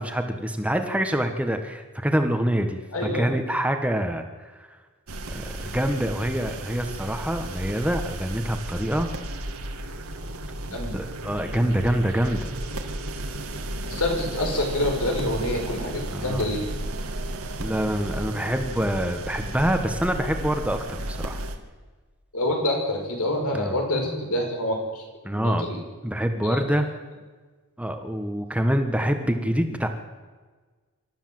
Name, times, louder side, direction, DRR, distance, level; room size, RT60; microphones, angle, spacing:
voice 1, 0.0-4.5 5.3-9.1 10.7-12.5 16.1-16.5 17.6-20.8 21.1-21.4 23.5-23.7 25.2-25.7 26.0-26.9 27.8-29.9, equal, 5° right, 6 dB, 1.4 m, -26 dB
voice 2, 2.9-3.3 10.7-10.9 13.8-16.6 22.3-25.0 25.3-25.8 26.4-26.7, left 1 dB, 85° left, 2 dB, 5.8 m, -27 dB
sound 1, 5.1-21.6, right 1 dB, 75° right, 2.1 m, -34 dB
26.5 x 13.0 x 7.8 m, 1.4 s
head